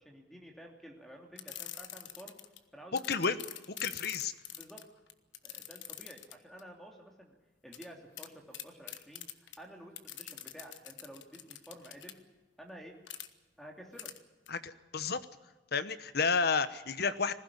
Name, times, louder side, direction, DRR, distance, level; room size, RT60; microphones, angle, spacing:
voice 1, 0.0-2.4 2.7-3.4 4.5-4.8 5.4-7.4 7.6-9.2 9.6-12.2 12.6-12.9 13.6-14.1, equal, ahead, 1 dB, 2.8 m, -51 dB
sound 1, 1.4-2.6 3.0-6.6 7.7-7.9 8.2-8.3 8.5-9.6 10.0-12.1 13.1-13.3 14.0-14.2 14.5-14.6, left 12 dB, 75° left, 1.3 m, -45 dB
voice 2, 2.9-3.4 3.8-4.3 14.5-15.2 15.7-17.3, left 5 dB, 55° left, 13 dB, 1.1 m, -31 dB
21.0 x 15.5 x 9.8 m, 1.2 s
head